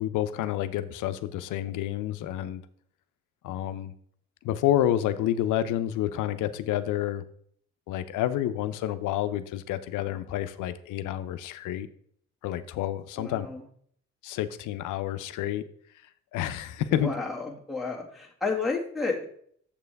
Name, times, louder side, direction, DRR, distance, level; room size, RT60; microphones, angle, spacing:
voice 1, 0.0-2.6 3.4-3.9 4.4-7.2 7.9-11.9 12.4-13.5 14.2-15.6 16.3-17.1, left 12 dB, 90° left, 12 dB, 0.6 m, -29 dB
voice 2, 13.2-13.6 16.9-19.3, left 4 dB, ahead, 1 dB, 1.8 m, -31 dB
7.2 x 6.8 x 3.4 m, 0.63 s
cardioid pair, 90°, 30 cm